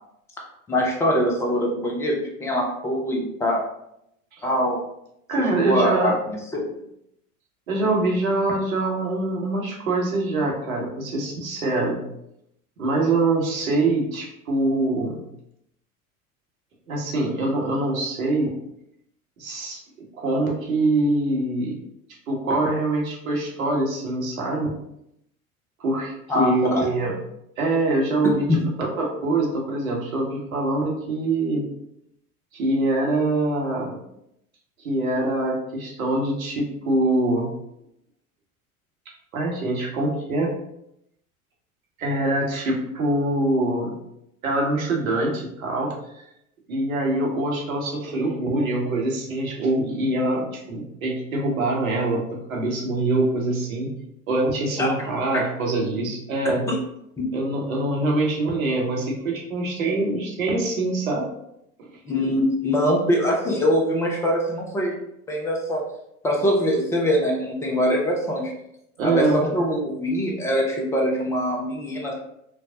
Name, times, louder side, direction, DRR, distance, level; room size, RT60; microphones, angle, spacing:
voice 1, 0.7-3.6 4.4-4.8 5.5-6.6 26.3-26.8 28.5-28.6 54.8-55.0 55.3-55.4 56.7-56.8 57.2-57.3 62.1-65.0 65.3-65.8 66.2-68.5 69.0-72.1, equal, 5° left, -1 dB, 0.3 m, -23 dB
voice 2, 5.3-6.1 7.7-12.0 12.8-15.2 16.9-18.5 19.4-19.8 20.2-21.8 22.3-24.7 25.8-27.1 27.6-28.5 28.8-31.7 32.5-34.0 34.8-37.5 39.3-40.5 42.0-43.9 44.4-45.9 46.7-53.9 54.3-56.7 57.3-61.3 61.8-61.9 69.0-69.4, right 2 dB, 70° right, -1 dB, 1.1 m, -24 dB
4.4 x 2.0 x 2.7 m, 0.78 s
figure-of-eight pair, 80°, 43 cm